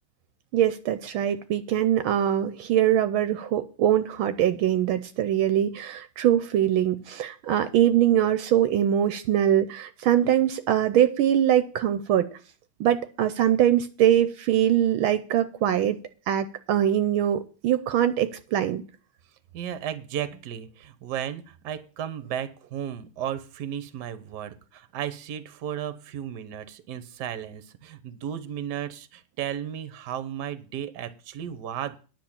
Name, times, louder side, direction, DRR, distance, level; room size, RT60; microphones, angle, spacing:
voice 1, 0.5-12.3 12.8-16.0 16.3-18.8, right 11 dB, 75° right, 12 dB, 1.5 m, -23 dB
voice 2, 19.5-32.0, right 10 dB, 60° right, 13 dB, 1.4 m, -34 dB
10.0 x 5.9 x 8.7 m, 0.37 s
omnidirectional pair, 2.3 m